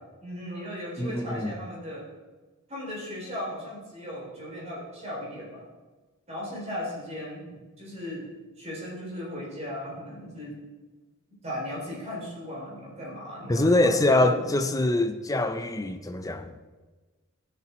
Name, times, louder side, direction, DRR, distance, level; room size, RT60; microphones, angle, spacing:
voice 1, 0.2-2.1 2.7-5.6 6.3-8.3 8.6-10.6 11.4-14.5, left 1 dB, 30° right, -4 dB, 3.7 m, -36 dB
voice 2, 1.0-1.5 13.5-16.5, left 1 dB, 15° left, 9 dB, 0.6 m, -24 dB
16.0 x 7.0 x 4.4 m, 1.3 s
head